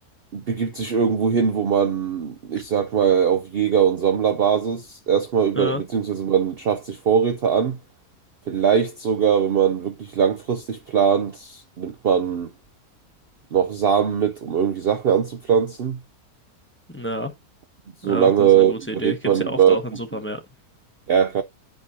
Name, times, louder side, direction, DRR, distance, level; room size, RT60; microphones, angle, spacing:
voice 1, 0.3-7.8 8.5-12.5 13.5-16.0 18.0-19.8 21.1-21.4, right 8 dB, 60° right, 0.6 m, -21 dB
voice 2, 16.9-17.3 18.0-20.4, equal, 10° left, 0.9 m, -29 dB
9.5 x 5.3 x 2.7 m
omnidirectional pair, 1.7 m